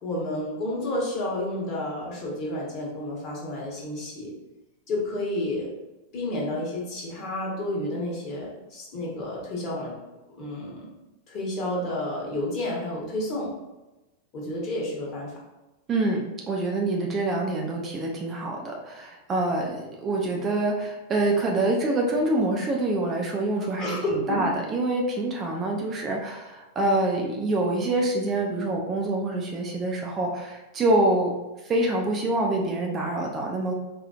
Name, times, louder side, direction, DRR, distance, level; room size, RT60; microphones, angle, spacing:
voice 1, 0.0-4.3 4.9-5.7 6.1-9.9 10.4-10.9 11.3-13.5 14.3-15.3 23.8-24.5, left 1 dB, 35° left, -3 dB, 1.2 m, -30 dB
voice 2, 15.9-24.0 24.3-31.3 31.6-33.7, right 2 dB, 25° right, 0 dB, 0.5 m, -26 dB
4.2 x 2.4 x 2.4 m, 1.0 s
figure-of-eight pair, 90°, 0 cm